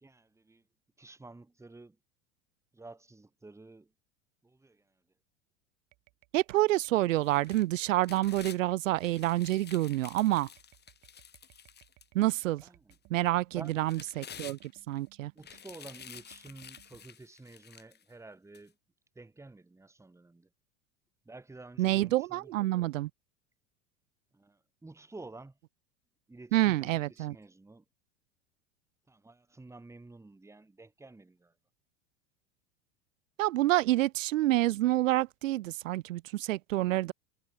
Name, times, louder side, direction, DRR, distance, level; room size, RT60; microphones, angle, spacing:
voice 1, 0.0-0.6 1.0-2.0 2.7-3.9 4.4-4.8 12.6-12.9 13.5-13.7 15.3-18.7 19.1-20.5 21.2-22.7 24.3-25.6 26.3-27.8 29.1-31.5, right 2 dB, 5° right, 1.6 m, -51 dB
sound 1, 5.9-17.0, right 22 dB, 55° right, 7.4 m, -63 dB
voice 2, 6.3-10.5 12.1-12.6 13.1-15.3 21.8-23.1 26.5-27.4 33.4-37.1, right 16 dB, 75° right, 0.7 m, -28 dB
sound 2, 7.2-8.6 9.0-12.4 12.9-13.0 13.6-15.0 15.4-18.0 18.5-18.6, left 8 dB, 25° left, 1.8 m, -50 dB
hypercardioid pair, 90°, 39 cm